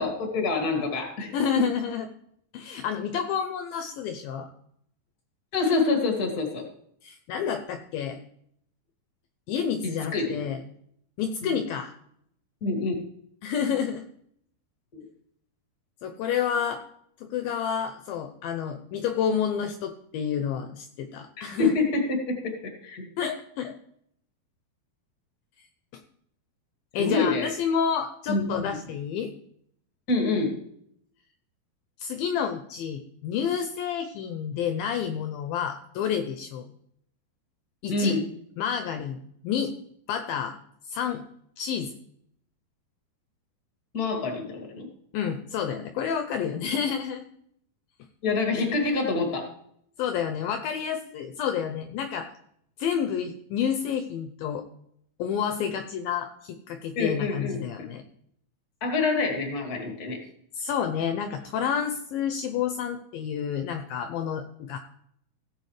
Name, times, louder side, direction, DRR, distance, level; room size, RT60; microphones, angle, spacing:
voice 1, 0.0-1.6 5.5-6.7 9.8-10.5 11.4-11.6 12.6-12.9 14.9-15.0 21.4-22.5 22.8-23.1 27.0-27.5 28.3-28.8 30.1-30.6 37.9-38.2 43.9-44.9 48.2-49.5 57.0-57.6 58.8-60.2, left 3 dB, 30° left, 2 dB, 2.2 m, -26 dB
voice 2, 1.3-2.1 2.5-4.5 7.0-8.2 9.5-10.6 11.2-11.9 13.4-14.0 16.0-16.8 17.2-21.7 23.2-23.8 25.9-26.0 26.9-29.3 32.0-36.7 37.8-38.2 38.6-39.2 39.4-39.7 40.1-40.6 40.9-41.2 41.6-41.9 45.1-47.2 50.0-52.3 52.8-54.6 55.2-58.0 60.6-64.8, left 8 dB, 75° left, 7 dB, 2.3 m, -29 dB
16.5 x 8.3 x 3.3 m, 0.68 s
omnidirectional pair, 4.6 m